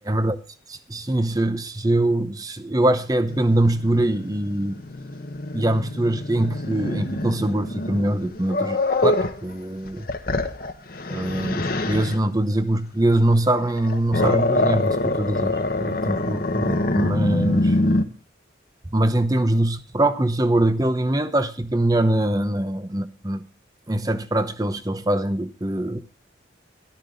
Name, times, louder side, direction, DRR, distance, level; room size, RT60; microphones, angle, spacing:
voice 1, 0.0-0.4 0.7-4.8 5.5-10.1 11.1-17.8 18.9-23.5 23.9-26.0, right 1 dB, 20° right, 0.8 m, -23 dB
Growling, 3.3-9.4 9.9-12.2 13.6-18.0, left 2 dB, 50° left, 1.1 m, -25 dB
13.5 x 12.0 x 3.8 m
head